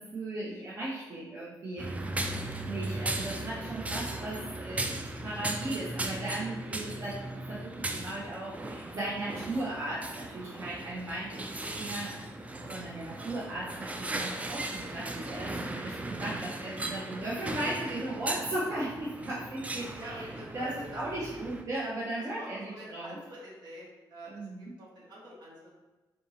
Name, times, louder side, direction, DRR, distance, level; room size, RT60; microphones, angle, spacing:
voice 1, 0.1-1.9 2.6-11.4 11.7-12.2 12.6-20.3 20.5-23.1 24.3-24.6, right 1 dB, 45° right, -8 dB, 0.8 m, -37 dB
sound 1, 1.8-21.6, right 2 dB, 20° right, 0.3 m, -37 dB
voice 2, 19.9-21.0 22.1-25.7, right 1 dB, 70° right, -7 dB, 1.5 m, -47 dB
3.8 x 2.7 x 2.7 m, 1.1 s
cardioid pair, 90°, 8 cm